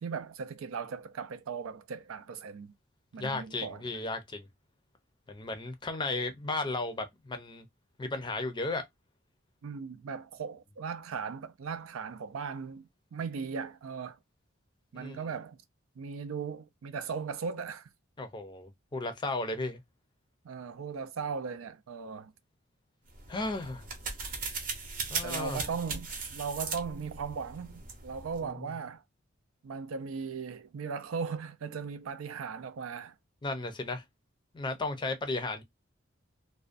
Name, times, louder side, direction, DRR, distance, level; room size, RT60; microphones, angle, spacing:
voice 1, 0.0-2.7 3.1-3.9 9.6-14.2 14.9-15.6 16.0-17.9 20.4-22.3 25.2-29.0 29.6-33.1, right 5 dB, 85° right, 0.4 m, -38 dB
voice 2, 3.1-4.5 5.3-7.7 8.0-8.8 14.9-15.2 18.2-19.8 23.3-23.9 25.1-25.6 28.4-28.5 33.4-34.0 34.5-35.6, left 2 dB, 25° left, 0.5 m, -34 dB
sound 1, 23.1-28.4, right 4 dB, 40° right, 0.7 m, -38 dB
2.4 x 2.1 x 2.5 m
head